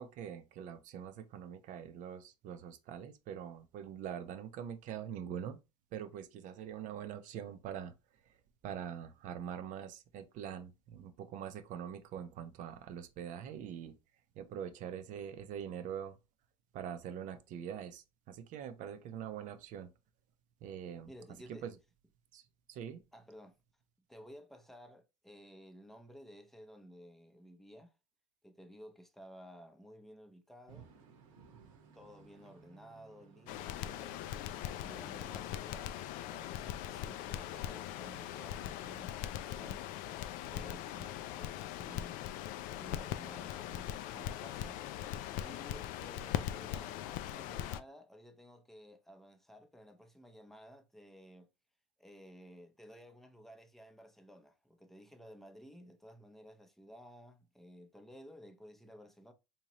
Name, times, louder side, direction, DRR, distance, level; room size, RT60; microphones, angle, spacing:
voice 1, 0.0-5.6 5.9-7.9 8.6-13.9 14.4-16.2 16.7-19.9 20.6-21.1 21.5-21.7 22.3-22.4 22.7-23.0, right 8 dB, 50° right, 0.6 m, -44 dB
voice 2, 21.1-21.7 23.1-23.5 24.1-27.9 28.4-30.9 31.9-34.2 34.7-40.1 40.4-42.2 42.8-44.8 45.4-51.5 52.0-59.3, equal, ahead, 0.6 m, -55 dB
sound 1, 30.7-36.4, right 6 dB, 80° right, 1.1 m, -60 dB
Crackle, 33.5-47.8, left 12 dB, 55° left, 0.4 m, -40 dB
3.6 x 2.8 x 2.9 m
supercardioid pair, 100°, 17 cm